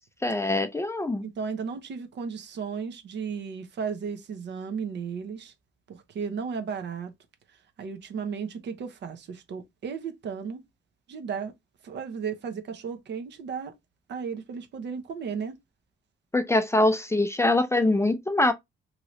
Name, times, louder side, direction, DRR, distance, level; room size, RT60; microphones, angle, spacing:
voice 1, 0.2-1.3 16.3-18.5, left 2 dB, 15° left, 0.4 m, -23 dB
voice 2, 1.2-5.5 5.9-7.1 7.8-10.6 11.1-11.5 11.8-13.7 14.1-15.6, right 6 dB, 60° right, 0.7 m, -34 dB
2.8 x 2.5 x 3.0 m
cardioid pair, 90°, 20 cm